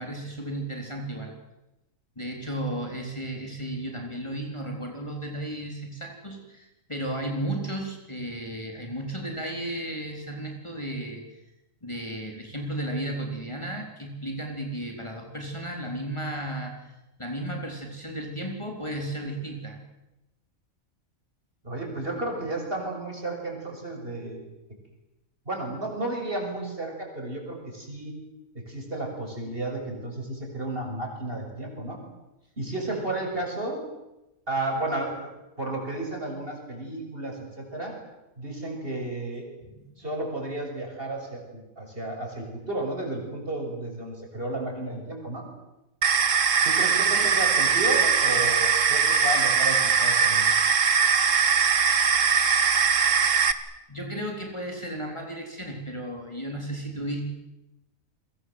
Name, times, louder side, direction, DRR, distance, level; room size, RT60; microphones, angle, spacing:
voice 1, 0.0-1.3 2.2-11.4 11.8-16.9 17.2-19.8 32.9-33.0 39.6-39.8 46.6-47.4 53.9-57.3, right 1 dB, 20° left, 1 dB, 3.8 m, -34 dB
voice 2, 21.6-24.4 25.5-28.2 28.5-32.0 32.6-33.8 34.5-35.3 35.6-38.0 38.4-39.5 40.0-45.5 46.6-50.5, right 2 dB, 40° right, 2 dB, 7.0 m, -32 dB
sound 1, 46.0-53.5, right 6 dB, 65° right, 1.7 m, -21 dB
30.0 x 23.0 x 7.9 m, 0.96 s
omnidirectional pair, 1.4 m